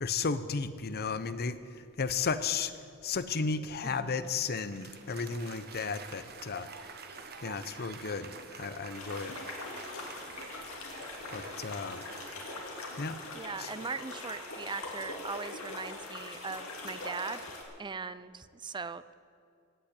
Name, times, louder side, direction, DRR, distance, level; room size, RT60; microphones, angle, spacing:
voice 1, 0.0-2.7 3.0-6.7 7.4-9.3 11.3-12.0 13.0-13.2 13.6-13.7, left 5 dB, 50° left, 13 dB, 0.7 m, -34 dB
voice 2, 3.9-4.3 13.3-17.5 17.8-19.1, right 5 dB, 20° right, 15 dB, 0.4 m, -40 dB
Applause, 4.0-13.6, right 5 dB, 50° right, 1.3 m, -48 dB
sound 1, 8.9-17.6, left 2 dB, 75° left, 2.7 m, -42 dB
16.5 x 8.8 x 8.3 m, 2.3 s
head